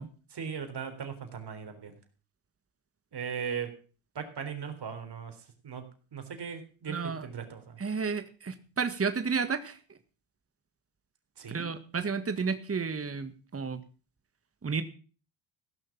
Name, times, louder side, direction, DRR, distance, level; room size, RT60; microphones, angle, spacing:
voice 1, 0.3-2.0 3.1-3.7 4.2-5.4 5.6-5.8 6.1-7.8 11.4-11.7, right 7 dB, 50° right, 7 dB, 3.8 m, -38 dB
voice 2, 6.9-7.3 7.8-9.8 11.5-13.8 14.6-14.8, right 5 dB, 30° right, 10 dB, 1.7 m, -32 dB
16.0 x 6.5 x 7.3 m, 0.39 s
supercardioid pair, 70°, 50 cm